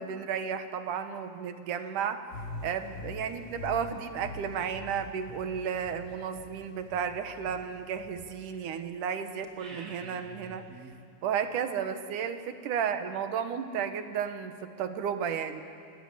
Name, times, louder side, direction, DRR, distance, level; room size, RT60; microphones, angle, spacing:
voice 1, 0.0-2.2 2.6-10.6 11.2-15.6, right 7 dB, 70° right, 9 dB, 2.8 m, -33 dB
sound 1, 2.3-8.3, left 3 dB, 70° left, 5.1 m, -44 dB
sound 2, 9.4-11.0, right 1 dB, 30° right, 2.5 m, -47 dB
28.5 x 20.0 x 8.7 m, 2.3 s
omnidirectional pair, 3.8 m